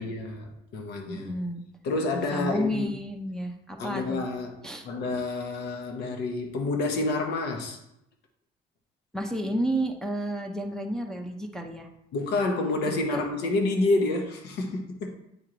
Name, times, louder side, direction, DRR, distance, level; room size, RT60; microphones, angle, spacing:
voice 1, 0.0-1.3 1.8-2.9 3.8-4.5 4.8-7.8 12.1-15.1, left 2 dB, 80° left, 3 dB, 1.0 m, -28 dB
voice 2, 1.1-1.6 2.1-4.2 4.6-4.9 9.1-11.9 12.9-13.2, equal, 5° left, 0 dB, 0.6 m, -31 dB
9.1 x 3.1 x 3.8 m, 0.80 s
cardioid pair, 110°, 17 cm